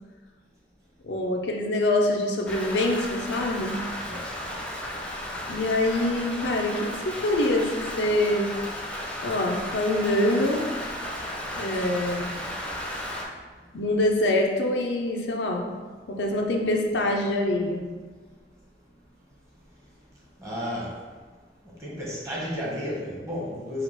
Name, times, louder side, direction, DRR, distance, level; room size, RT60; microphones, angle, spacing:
voice 1, 1.0-3.8 5.5-8.5 9.2-10.6 11.5-12.3 13.7-15.7 16.1-17.8, left 1 dB, 85° left, 1 dB, 0.6 m, -25 dB
Rain, 2.5-13.2, equal, 5° left, 0.6 m, -34 dB
voice 2, 20.4-20.9 21.8-23.8, equal, 15° right, -5 dB, 1.2 m, -32 dB
4.9 x 2.4 x 4.5 m, 1.4 s
head